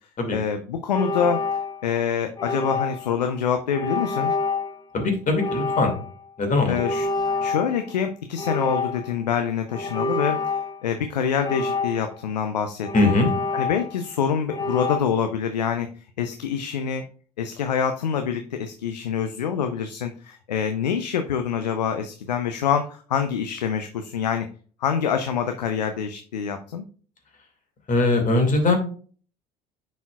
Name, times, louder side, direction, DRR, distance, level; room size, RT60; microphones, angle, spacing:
voice 1, 0.3-1.4 1.8-4.3 6.6-7.1 7.4-13.2 13.5-17.1 17.4-24.5 24.8-26.8, left 7 dB, 85° left, 7 dB, 0.5 m, -26 dB
sound 1, 0.9-2.0 2.4-3.2 3.7-4.8 5.4-6.2 6.7-8.0 8.4-9.2 9.7-10.8 11.4-12.3 12.8-14.1 14.5-15.0, left 3 dB, 20° left, 0.7 m, -28 dB
voice 2, 4.9-5.9 6.4-6.7 12.9-13.3 27.9-28.8, left 2 dB, 40° left, 4 dB, 2.2 m, -20 dB
10.5 x 4.2 x 2.3 m, 0.41 s
hypercardioid pair, 60°, 21 cm